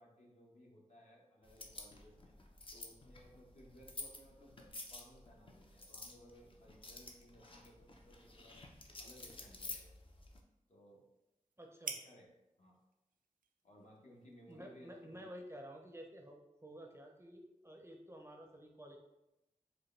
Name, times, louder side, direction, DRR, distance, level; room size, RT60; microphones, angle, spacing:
voice 1, 0.0-2.3 2.7-8.6 9.0-9.9 10.7-11.1 12.0-12.3 12.6-12.7 13.6-15.3, equal, 60° left, -2 dB, 1.1 m, -61 dB
sound 1, 1.4-10.4, left 2 dB, 40° left, 0.6 m, -51 dB
sound 2, 7.5-15.3, right 5 dB, 80° right, 0.4 m, -54 dB
voice 2, 11.6-12.0 14.5-19.0, equal, 20° right, 2 dB, 0.6 m, -52 dB
4.9 x 2.2 x 3.2 m, 0.91 s
wide cardioid pair, 60°, 14 cm